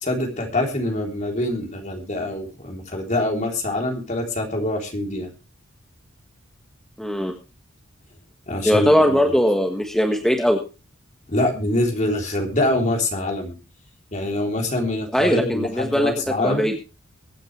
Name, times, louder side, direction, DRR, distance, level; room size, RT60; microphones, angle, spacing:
voice 1, 0.0-5.3 8.5-9.2 11.3-13.6 14.1-16.7, left 1 dB, 35° left, 2 dB, 3.7 m, -24 dB
voice 2, 7.0-7.3 8.6-10.6 15.1-16.1 16.4-16.7, equal, ahead, 3 dB, 1.5 m, -19 dB
23.5 x 9.2 x 3.3 m, 0.31 s
head